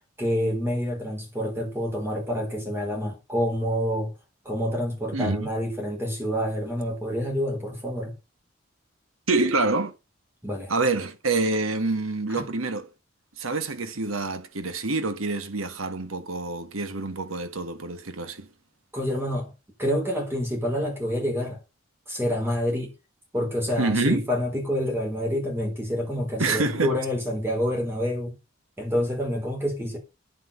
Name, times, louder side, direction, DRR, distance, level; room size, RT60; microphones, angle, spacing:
voice 1, 0.2-4.1 4.4-8.1 10.4-10.7 18.9-19.5 19.8-21.6 22.1-22.9 23.3-28.4 28.8-30.0, equal, 10° right, 4.4 m, -27 dB
voice 2, 5.1-5.5 9.3-9.9 10.7-12.9 13.4-18.5 23.8-24.3 26.4-26.9, right 3 dB, 85° right, 1.6 m, -26 dB
9.4 x 7.8 x 6.8 m
head